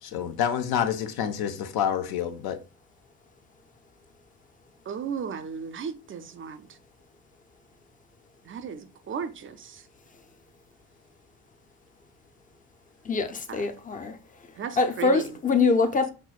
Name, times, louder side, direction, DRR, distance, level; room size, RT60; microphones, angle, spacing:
voice 1, 0.0-2.6, left 8 dB, 65° left, 0.7 m, -28 dB
voice 2, 4.9-6.8 8.4-9.9 13.5-13.7 14.6-15.4, right 6 dB, 35° right, 0.4 m, -36 dB
voice 3, 13.0-14.2 14.8-16.1, left 4 dB, 20° left, 0.5 m, -24 dB
5.8 x 2.0 x 2.4 m
cardioid pair, 100°, 40 cm